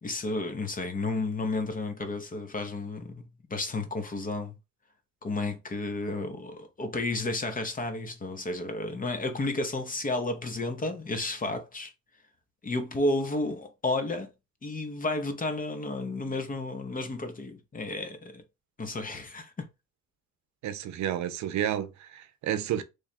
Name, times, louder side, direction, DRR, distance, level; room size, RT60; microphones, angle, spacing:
voice 1, 0.0-4.5 5.2-11.9 12.6-14.3 14.6-18.4 18.8-19.7, left 2 dB, 30° left, 0.7 m, -32 dB
voice 2, 20.6-22.8, right 10 dB, 70° right, 0.7 m, -31 dB
3.2 x 2.3 x 4.2 m
cardioid pair, 90°, 30 cm